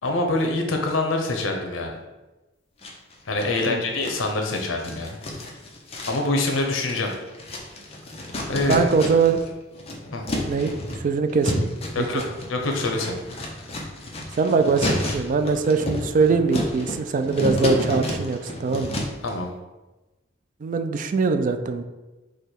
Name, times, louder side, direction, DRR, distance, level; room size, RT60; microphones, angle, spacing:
voice 1, 0.0-2.0 3.3-5.1 6.0-7.1 8.5-8.9 10.1-10.2 11.9-12.2 12.5-13.1 19.2-19.5, left 2 dB, 85° left, 2 dB, 0.8 m, -25 dB
sound 1, 2.8-3.6 4.0-9.5 9.7-19.3, left 1 dB, 30° left, 0.7 m, -30 dB
voice 2, 8.7-9.4 10.5-11.7 12.0-12.1 14.4-19.0 20.6-21.8, right 4 dB, 40° right, 8 dB, 0.3 m, -22 dB
4.9 x 2.3 x 4.4 m, 1.1 s
head